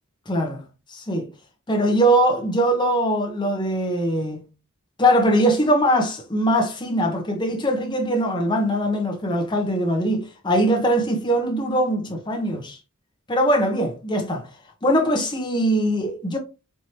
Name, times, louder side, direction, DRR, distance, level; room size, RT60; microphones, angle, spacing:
voice 1, 0.3-0.6 0.9-1.3 1.7-4.4 5.0-12.8 13.3-14.5 14.8-16.4, equal, 20° left, 0.9 m, -21 dB
4.5 x 3.1 x 2.9 m
head